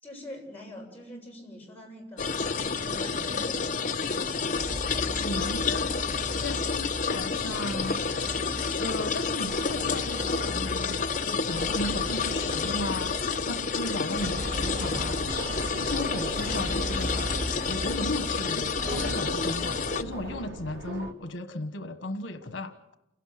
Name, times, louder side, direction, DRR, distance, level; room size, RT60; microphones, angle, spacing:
voice 1, 0.0-4.1, left 1 dB, 10° left, -3 dB, 7.7 m, -44 dB
sound 1, 2.2-20.0, left 5 dB, 40° left, 0.9 m, -30 dB
sound 2, 4.5-19.1, equal, 35° right, 2.0 m, -37 dB
voice 2, 5.1-8.1 8.8-17.3 17.6-22.7, left 1 dB, 90° left, 9 dB, 1.3 m, -36 dB
sound 3, 15.3-21.1, right 1 dB, 70° right, 2.3 m, -40 dB
29.0 x 17.5 x 7.8 m, 0.93 s
head